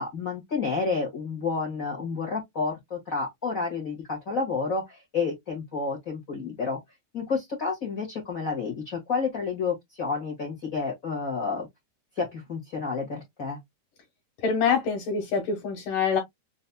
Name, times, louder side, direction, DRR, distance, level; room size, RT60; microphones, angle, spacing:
voice 1, 0.0-6.8 7.1-11.7 12.1-13.6, left 4 dB, 85° left, 0.7 m, -30 dB
voice 2, 14.4-16.2, left 5 dB, 65° left, 2.6 m, -25 dB
6.3 x 2.7 x 2.2 m
omnidirectional pair, 4.5 m